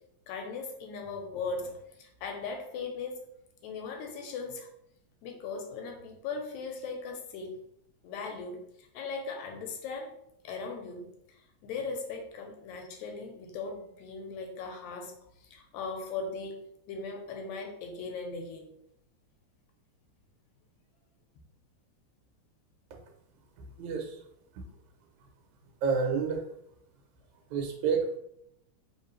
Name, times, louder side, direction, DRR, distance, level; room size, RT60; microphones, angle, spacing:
voice 1, 0.3-3.2 3.6-4.7 5.2-7.6 8.0-10.1 10.4-15.1 15.4-16.6 16.9-18.7, left 4 dB, 85° left, 3 dB, 2.0 m, -38 dB
voice 2, 23.8-24.2 24.6-24.7 25.8-26.4 27.5-28.1, right 5 dB, 80° right, 2 dB, 2.1 m, -29 dB
4.4 x 3.1 x 3.1 m, 0.76 s
omnidirectional pair, 3.4 m